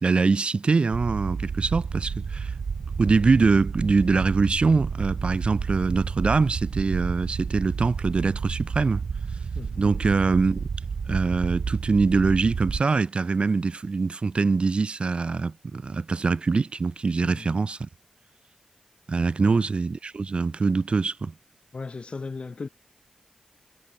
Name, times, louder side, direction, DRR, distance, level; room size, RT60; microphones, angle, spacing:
voice 1, 0.0-2.5 3.0-9.0 9.8-10.6 11.1-17.9 19.1-21.3, right 4 dB, 55° right, 1.5 m, -23 dB
sound 1, 0.9-12.8, right 5 dB, 80° right, 5.0 m, -31 dB
voice 2, 9.5-10.1 17.2-17.6 19.4-19.7 21.7-22.7, left 4 dB, 55° left, 4.4 m, -37 dB
wide cardioid pair, 75°, 2 cm